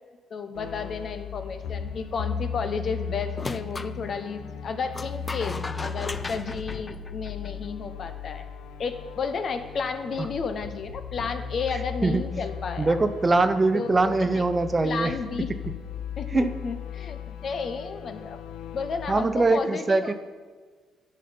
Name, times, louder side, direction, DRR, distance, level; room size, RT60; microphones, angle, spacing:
voice 1, 0.3-8.5 8.8-13.0 13.7-14.4 14.8-15.5 16.2-18.4 18.7-20.1, left 5 dB, 55° left, 8 dB, 0.9 m, -32 dB
sound 1, 0.5-19.2, left 7 dB, 90° left, 0.6 m, -37 dB
sound 2, 3.4-3.9 4.9-7.6, left 3 dB, 25° left, 0.4 m, -36 dB
voice 2, 12.8-15.1 16.3-16.5 19.1-20.1, right 3 dB, 25° right, 11 dB, 0.6 m, -22 dB
12.0 x 5.4 x 5.1 m, 1.5 s
cardioid pair, 90°, 0 cm